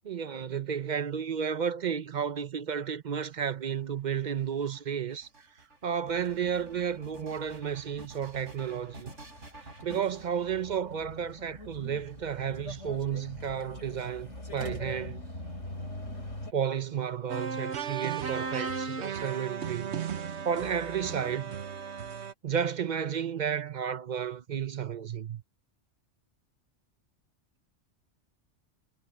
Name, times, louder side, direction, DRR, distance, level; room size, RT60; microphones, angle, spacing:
voice 1, 0.0-5.3 5.8-9.1 9.8-15.2 16.5-20.0 20.4-21.6 22.4-25.4, right 8 dB, 45° right, 0.7 m, -32 dB
sound 1, 3.2-11.2 12.0-12.8, right 2 dB, 80° right, 5.1 m, -51 dB
sound 2, 6.1-16.5, left 1 dB, 80° left, 6.6 m, -44 dB
sound 3, 17.3-22.3, right 6 dB, 65° right, 1.3 m, -35 dB
omnidirectional pair, 1.2 m